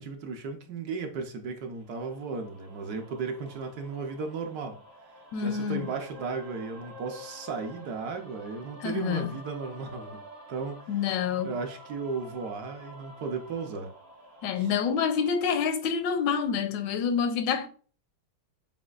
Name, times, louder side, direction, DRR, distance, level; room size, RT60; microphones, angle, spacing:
voice 1, 0.0-4.8 5.4-11.1 11.4-13.9 14.6-14.7, right 4 dB, 65° right, 1.1 m, -35 dB
sound 1, 1.8-15.4, equal, 85° right, 2.3 m, -49 dB
voice 2, 5.3-5.9 8.8-9.4 10.9-11.5 14.4-17.7, left 7 dB, 85° left, 1.3 m, -27 dB
7.2 x 2.6 x 2.4 m
omnidirectional pair, 1.9 m